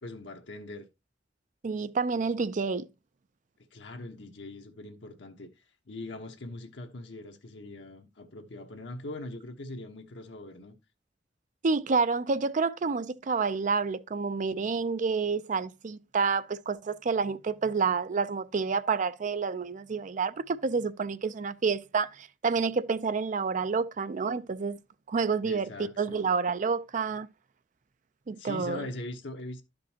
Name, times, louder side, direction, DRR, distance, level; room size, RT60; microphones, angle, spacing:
voice 1, 0.0-0.9 3.7-10.7 25.4-26.3 28.3-29.6, left 2 dB, 85° left, 1.0 m, -42 dB
voice 2, 1.6-2.9 11.6-24.8 25.1-25.7 26.0-27.3 28.3-28.8, right 5 dB, 45° right, 0.4 m, -29 dB
12.0 x 5.2 x 2.8 m
head